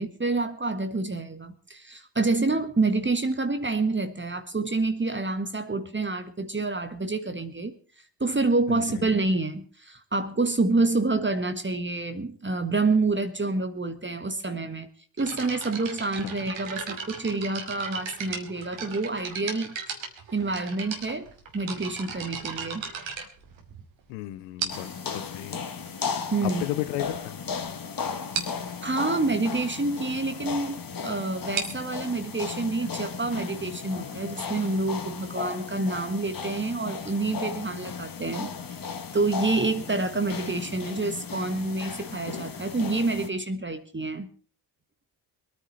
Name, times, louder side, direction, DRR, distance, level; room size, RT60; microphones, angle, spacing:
voice 1, 0.0-7.8 8.2-14.9 15.2-19.8 20.3-22.8 26.3-26.7 28.8-38.8 39.1-44.3, right 3 dB, 25° right, 1.6 m, -28 dB
voice 2, 8.7-9.1 16.2-16.4 24.1-25.6 26.4-27.4, left 16 dB, 90° left, 0.7 m, -34 dB
sound 1, 15.2-24.0 24.6-25.0 25.9-26.0 26.6-26.7 26.9-27.1 27.5-27.6 27.8-27.9 28.3-28.6 31.3-34.8, right 6 dB, 70° right, 2.5 m, -37 dB
sound 2, 24.7-43.3, left 6 dB, 45° left, 1.8 m, -36 dB
22.5 x 9.8 x 4.4 m
hypercardioid pair, 45°, 48 cm